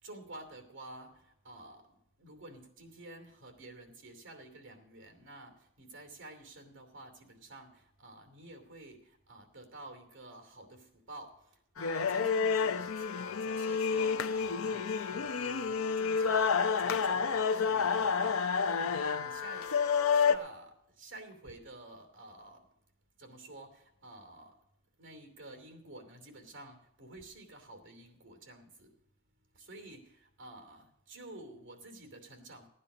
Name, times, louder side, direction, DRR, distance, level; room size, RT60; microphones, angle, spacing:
voice 1, 0.0-1.9 2.2-19.7 20.1-22.7 23.2-24.6 25.0-29.0 29.5-32.7, right 2 dB, 60° right, 2.8 m, -50 dB
sound 1, 11.8-20.4, left 6 dB, 90° left, 0.6 m, -29 dB
15.5 x 10.0 x 5.0 m
head